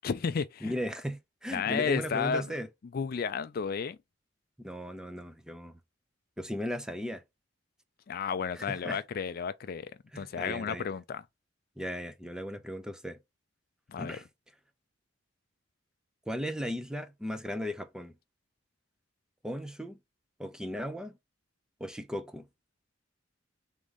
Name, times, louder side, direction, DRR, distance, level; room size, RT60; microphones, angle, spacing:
voice 1, 0.0-0.7 1.5-2.4 2.9-4.0 8.1-9.9 10.2-11.2 13.9-14.2, left 6 dB, 50° left, 0.4 m, -32 dB
voice 2, 0.6-2.7 4.6-5.8 6.4-7.2 8.5-9.0 10.1-10.9 11.8-13.2 14.0-14.2 16.3-18.2 19.4-20.0 20.4-21.2 21.8-22.5, equal, 5° right, 0.6 m, -36 dB
3.9 x 3.6 x 3.4 m
head